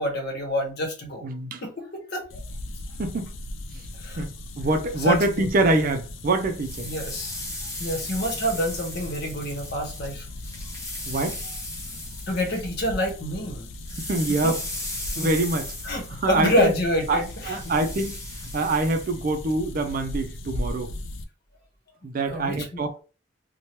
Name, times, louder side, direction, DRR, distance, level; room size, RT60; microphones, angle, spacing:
voice 1, 0.0-1.3 1.6-2.4 4.0-4.3 5.0-5.5 6.8-7.4 7.8-10.3 12.3-13.7 14.4-14.5 15.1-15.3 15.8-17.7 22.3-22.8, equal, 60° left, 0.9 m, -27 dB
voice 2, 1.2-1.6 3.0-3.4 4.2-4.3 4.6-6.9 11.0-11.4 14.0-14.6 15.2-15.7 16.2-16.7 17.1-18.2 18.5-20.9 22.0-23.0, right 2 dB, 50° right, 0.4 m, -25 dB
sound 1, 2.3-21.2, left 1 dB, 85° left, 0.4 m, -38 dB
sound 2, 6.4-13.2 13.4-19.5, left 1 dB, 15° left, 0.9 m, -37 dB
2.9 x 2.2 x 2.9 m
head